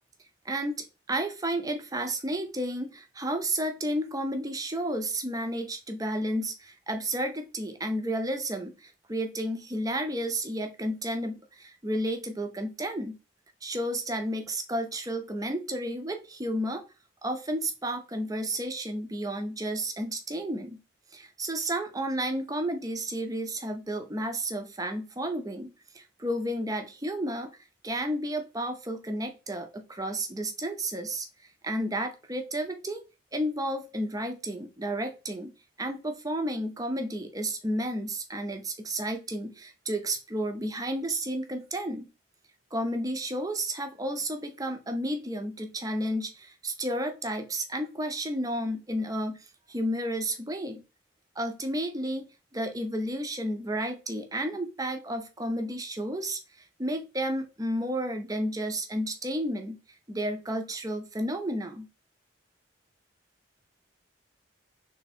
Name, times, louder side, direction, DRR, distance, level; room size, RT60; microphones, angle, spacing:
voice 1, 0.4-13.2 13.6-16.9 17.2-20.8 21.1-27.5 27.8-31.3 31.6-33.0 33.3-35.5 35.8-42.1 42.7-50.8 51.4-56.4 56.8-59.8 60.1-61.9, right 1 dB, 15° right, 6 dB, 0.6 m, -32 dB
3.5 x 3.4 x 4.2 m, 0.29 s
head